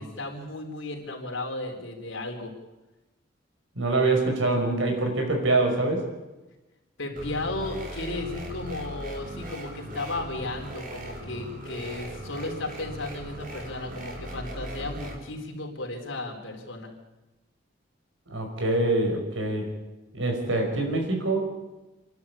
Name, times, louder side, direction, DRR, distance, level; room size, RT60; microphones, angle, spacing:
voice 1, 0.0-2.5 7.0-16.9, left 2 dB, 85° left, 2 dB, 4.1 m, -34 dB
voice 2, 3.8-6.1 18.3-19.7 20.1-21.5, right 2 dB, 90° right, 4 dB, 5.4 m, -25 dB
sound 1, 7.2-15.2, equal, 45° right, 4.1 m, -38 dB
27.5 x 12.0 x 8.6 m, 1.1 s
head